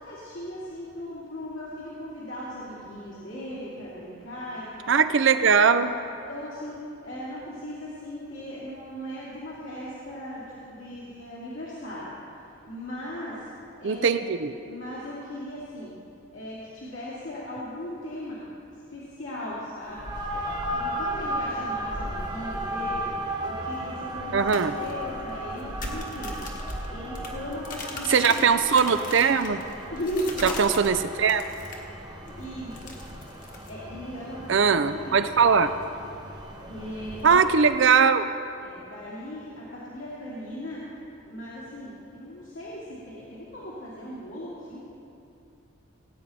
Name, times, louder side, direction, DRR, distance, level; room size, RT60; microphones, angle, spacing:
voice 1, 0.0-5.1 6.3-12.1 12.7-13.5 13.8-14.2 14.7-15.9 16.3-18.4 18.9-20.1 20.7-23.1 23.4-26.5 26.9-28.4 29.9-30.6 32.3-32.9 33.7-35.4 36.7-37.4 38.6-40.8 41.3-44.8, equal, 75° left, -8 dB, 2.5 m, -38 dB
voice 2, 4.9-5.9 13.8-14.5 24.3-24.7 28.1-29.6 30.4-31.4 34.5-35.7 37.2-38.3, right 6 dB, 65° right, 11 dB, 0.5 m, -20 dB
sound 1, 19.8-37.8, right 1 dB, 20° right, 1.3 m, -35 dB
sound 2, 24.4-31.9 32.2-33.8, left 3 dB, 40° left, 1.4 m, -40 dB
19.0 x 9.0 x 4.2 m, 2.6 s
head